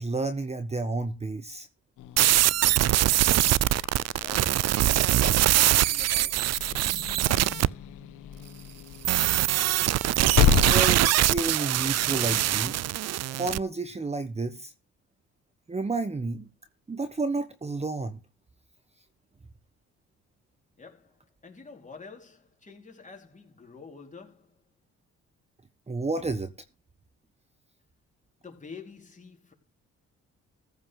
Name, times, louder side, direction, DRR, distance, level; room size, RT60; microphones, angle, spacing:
voice 1, 0.0-1.7 10.6-12.7 13.2-14.7 15.7-16.5 16.9-18.2 25.9-26.5, right 3 dB, 20° right, 1.3 m, -31 dB
Growling / Hiss, 2.0-12.7, left 9 dB, 90° left, 1.5 m, -32 dB
sound 1, 2.2-7.7 9.0-13.6, right 14 dB, 60° right, 0.5 m, -23 dB
voice 2, 4.2-7.9 20.8-24.6 28.4-29.5, left 4 dB, 25° left, 4.3 m, -48 dB
15.0 x 5.8 x 5.8 m
cardioid pair, 90°, 30 cm